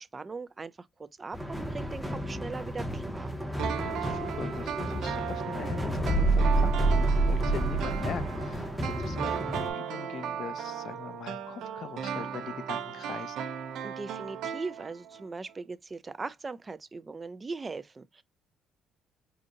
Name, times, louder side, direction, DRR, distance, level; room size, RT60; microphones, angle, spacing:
voice 1, 0.0-3.3 13.8-18.2, right 4 dB, 20° right, 0.3 m, -40 dB
sound 1, 1.3-9.7, right 2 dB, ahead, 0.7 m, -29 dB
sound 2, 3.6-15.2 15.5-15.6, right 8 dB, 65° right, 0.6 m, -36 dB
voice 2, 3.8-13.4, left 8 dB, 50° left, 0.4 m, -42 dB
4.9 x 2.6 x 2.5 m
cardioid pair, 150°, 0 cm